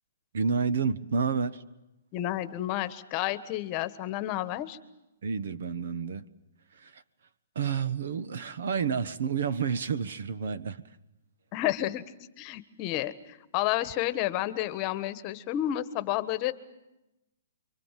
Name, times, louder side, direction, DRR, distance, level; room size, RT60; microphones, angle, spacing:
voice 1, 0.3-1.6 5.2-6.3 6.8-7.0 7.5-10.8, right 6 dB, 65° right, 1.3 m, -30 dB
voice 2, 2.1-4.8 11.5-12.0 12.4-16.5, left 14 dB, 30° left, 1.3 m, -30 dB
29.5 x 24.0 x 7.6 m
hypercardioid pair, 155°, 0 cm